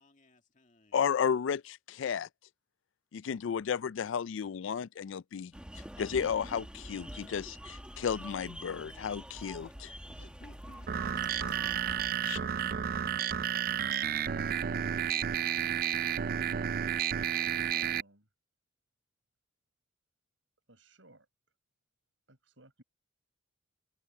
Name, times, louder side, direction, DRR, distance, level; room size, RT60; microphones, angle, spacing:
voice 1, 0.0-1.0 10.0-11.5 12.0-14.8 16.6-17.3, left 2 dB, 40° left, 2.2 m, -61 dB
voice 2, 0.9-2.3 3.1-5.5 6.0-9.9 12.2-12.4, left 7 dB, 70° left, 0.4 m, -33 dB
sound 1, 5.5-12.1, equal, 5° right, 1.3 m, -46 dB
sound 2, 10.9-18.0, right 9 dB, 45° right, 0.4 m, -31 dB
voice 3, 17.4-18.3 20.7-21.3 22.3-22.8, right 2 dB, 70° right, 7.4 m, -59 dB
head